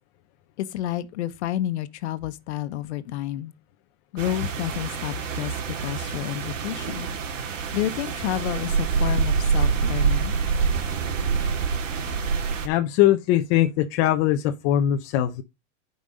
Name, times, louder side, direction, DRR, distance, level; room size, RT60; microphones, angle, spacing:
voice 1, 0.6-3.5 4.1-7.1 7.7-10.3, left 12 dB, 60° left, 1.1 m, -30 dB
sound 1, 4.2-12.7, right 5 dB, 85° right, 2.7 m, -26 dB
voice 2, 12.6-15.4, left 12 dB, 30° left, 0.6 m, -21 dB
8.5 x 5.3 x 5.3 m
supercardioid pair, 165°, 37 cm